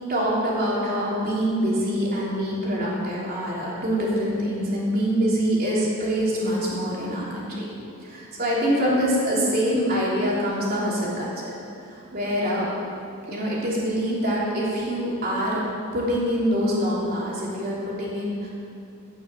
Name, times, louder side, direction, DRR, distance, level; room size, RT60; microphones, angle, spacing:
voice 1, 0.1-7.7 8.0-11.5 11.9-12.7 13.3-15.6 15.9-18.5, equal, 45° right, -6 dB, 3.3 m, -25 dB
15.5 x 6.6 x 7.2 m, 2.5 s
head